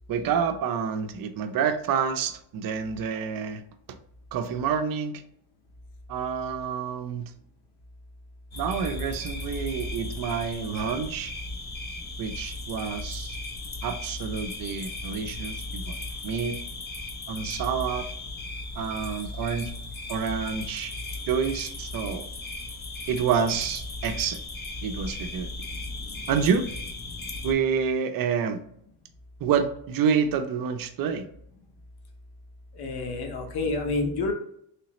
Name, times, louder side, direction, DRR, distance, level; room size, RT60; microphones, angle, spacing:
voice 1, 0.1-3.6 4.3-5.1 6.1-7.3 8.6-11.3 12.2-13.4 13.8-16.0 16.2-16.6 17.3-18.1 18.8-19.7 20.1-20.9 21.3-22.2 23.1-24.4 24.8-25.5 26.3-26.7 27.4-28.6 29.4-31.3, right 7 dB, 45° right, 8 dB, 0.5 m, -28 dB
sound 1, 8.5-27.5, left 2 dB, 25° left, 0.4 m, -36 dB
voice 2, 32.7-34.3, left 3 dB, 55° left, 3 dB, 0.9 m, -28 dB
3.3 x 3.0 x 2.9 m, 0.68 s
cardioid pair, 115°, 47 cm